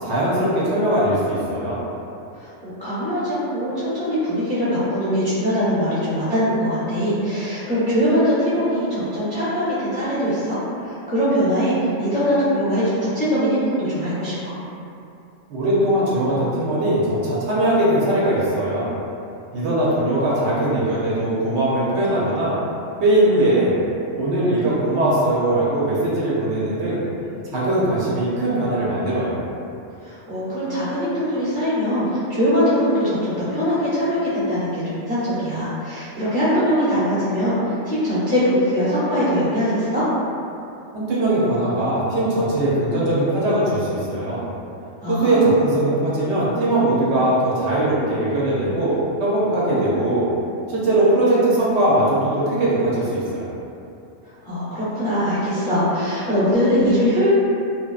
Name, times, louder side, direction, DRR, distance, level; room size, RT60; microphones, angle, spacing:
voice 1, 0.0-1.8 15.5-18.9 19.5-22.6 23.0-23.8 24.2-27.1 27.5-29.4 40.9-44.4 45.1-50.3 50.7-53.5, right 1 dB, 70° right, -7 dB, 0.9 m, -20 dB
voice 2, 2.4-14.6 30.0-40.0 45.0-45.5 49.7-49.8 54.4-57.3, equal, 25° left, -14 dB, 0.6 m, -22 dB
2.7 x 2.2 x 2.3 m, 2.7 s
omnidirectional pair, 1.3 m